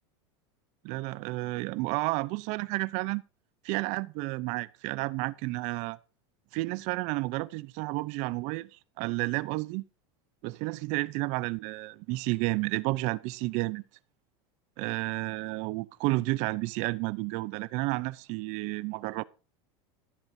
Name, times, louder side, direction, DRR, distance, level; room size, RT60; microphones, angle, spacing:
voice 1, 0.8-3.2 3.6-6.0 6.5-8.7 9.0-9.8 10.4-13.8 14.8-19.2, right 22 dB, 55° right, 0.6 m, -31 dB
14.5 x 11.5 x 2.7 m
supercardioid pair, 130°, 14 cm